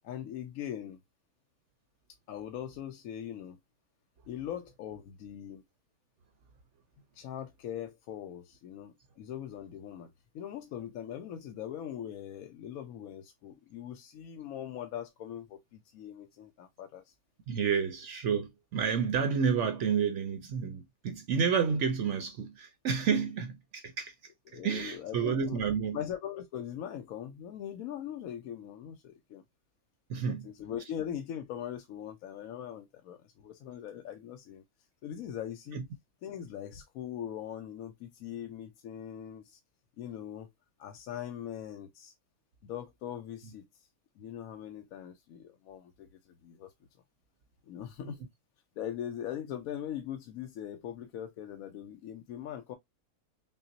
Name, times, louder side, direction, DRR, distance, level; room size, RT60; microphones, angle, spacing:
voice 1, 0.0-1.0 2.3-3.6 4.3-5.6 7.1-17.1 24.5-25.6 25.9-29.4 30.2-34.6 35.0-35.8 36.2-39.6 40.0-40.5 40.8-42.1 42.6-43.9 44.2-46.7 47.7-48.2 48.8-52.8, left 10 dB, 70° left, 1.0 m, -41 dB
voice 2, 17.5-24.1 24.5-26.0 30.1-30.5 35.7-35.8 48.0-48.1, right 6 dB, 65° right, 0.8 m, -30 dB
5.7 x 2.0 x 2.6 m
omnidirectional pair, 1.6 m